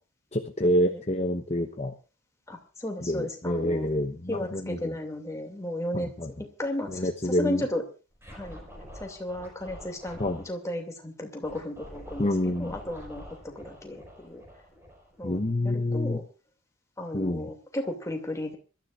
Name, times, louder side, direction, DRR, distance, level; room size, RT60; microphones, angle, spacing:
voice 1, 0.3-1.9 3.0-4.9 5.9-6.3 6.9-7.6 10.2-10.4 12.2-12.8 15.2-16.2 17.1-17.5, left 1 dB, 30° left, 4 dB, 1.0 m, -27 dB
voice 2, 2.5-3.9 4.3-6.1 6.6-7.8 8.3-8.6 9.0-10.2 10.5-14.4 15.2-15.4 15.6-16.2 17.0-18.6, left 1 dB, 15° left, 3 dB, 2.5 m, -34 dB
Scratching (performance technique), 8.2-10.5 11.4-15.7, equal, 10° right, 5.5 m, -47 dB
26.0 x 13.0 x 2.5 m, 0.34 s
head